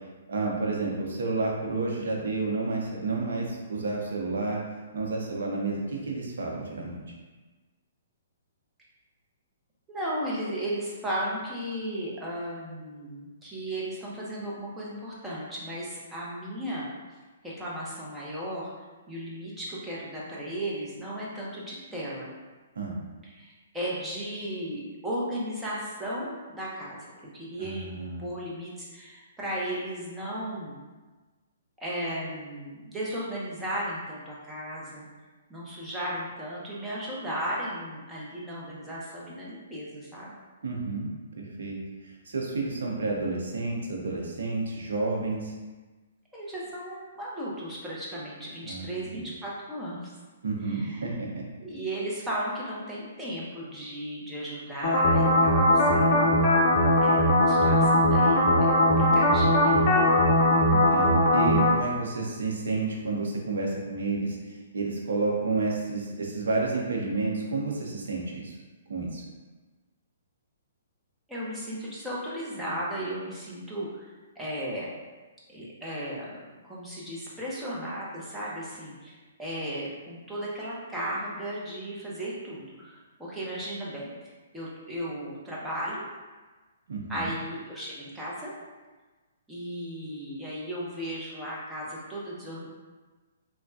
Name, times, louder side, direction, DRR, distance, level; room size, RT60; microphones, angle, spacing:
voice 1, 0.3-4.6 4.9-7.0 22.8-23.0 27.6-28.2 40.6-41.1 41.4-41.8 42.3-45.5 48.6-49.2 50.4-51.4 60.7-68.5 68.9-69.2 86.9-87.3, right 3 dB, 70° right, -1 dB, 0.7 m, -30 dB
voice 2, 9.9-16.9 17.4-18.7 19.1-22.3 23.2-27.1 27.3-30.8 31.8-35.0 35.5-40.3 46.3-50.0 50.7-51.0 51.6-56.2 57.0-59.9 71.3-74.9 75.5-82.9 83.2-84.1 84.5-86.0 87.1-88.5 89.5-92.7, right 1 dB, 10° right, -7 dB, 0.8 m, -35 dB
sound 1, 54.8-61.7, left 1 dB, 40° left, 0.6 m, -20 dB
3.2 x 2.2 x 2.7 m, 1.3 s
hypercardioid pair, 135°, 0 cm